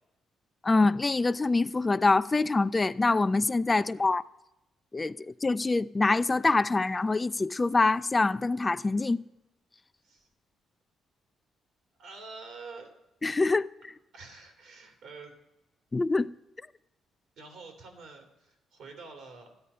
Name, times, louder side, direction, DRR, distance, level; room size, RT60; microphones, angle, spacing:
voice 1, 0.6-4.2 4.9-9.2 13.2-13.7 15.9-16.3, left 3 dB, 25° left, 0.4 m, -25 dB
voice 2, 12.0-12.9 14.1-15.3 17.4-19.5, right 4 dB, 75° right, 2.8 m, -47 dB
13.5 x 10.0 x 5.5 m
cardioid pair, 90°, 0 cm